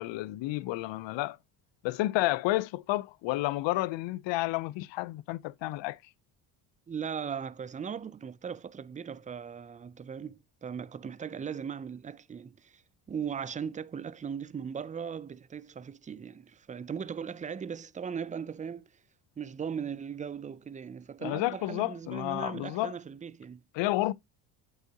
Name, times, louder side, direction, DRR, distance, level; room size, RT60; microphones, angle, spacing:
voice 1, 0.0-1.4 1.8-6.0 21.2-23.0 23.7-24.1, left 18 dB, 70° left, 0.6 m, -31 dB
voice 2, 6.9-12.8 13.1-18.9 19.4-23.6, right 7 dB, 20° right, 0.3 m, -38 dB
7.6 x 5.5 x 2.7 m
cardioid pair, 85°, 47 cm